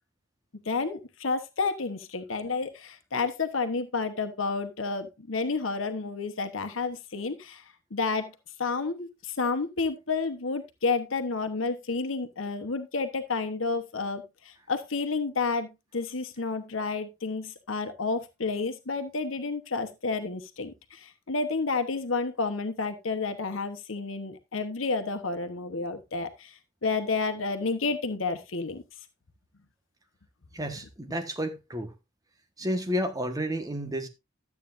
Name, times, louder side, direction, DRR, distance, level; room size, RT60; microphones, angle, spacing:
voice 1, 0.6-7.6 7.9-8.3 8.6-28.8, left 4 dB, 90° left, 1.1 m, -30 dB
voice 2, 30.5-31.9 32.6-34.1, equal, 20° right, 1.3 m, -31 dB
12.5 x 8.3 x 2.6 m
head